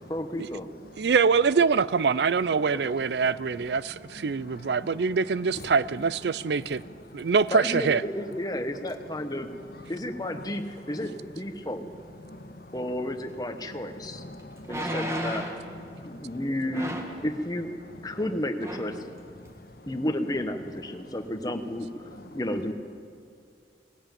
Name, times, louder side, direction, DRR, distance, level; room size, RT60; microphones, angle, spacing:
voice 1, 0.1-0.7 2.7-2.9 7.5-9.5 9.9-11.9 12.7-14.2 14.7-15.4 16.0-17.0 17.2-17.7 18.0-19.0 19.9-22.7, left 1 dB, 20° left, 1.1 m, -32 dB
voice 2, 1.0-6.8 7.1-8.0, right 5 dB, 70° right, 0.4 m, -24 dB
voice 3, 4.1-5.1 6.8-7.3 9.2-9.3 9.6-10.6 10.9-11.1 12.2-12.8 13.7-15.0 15.9-16.4 17.1-17.2 17.9-18.2 19.0-19.1 19.4-19.9 21.0-21.1 22.1-22.4, left 1 dB, 55° left, 1.5 m, -46 dB
sound 1, 13.6-13.7 14.6-15.7 16.7-17.2 18.2-18.3 18.6-18.9 19.5-19.6, equal, 15° right, 1.9 m, -33 dB
19.5 x 16.0 x 9.1 m
head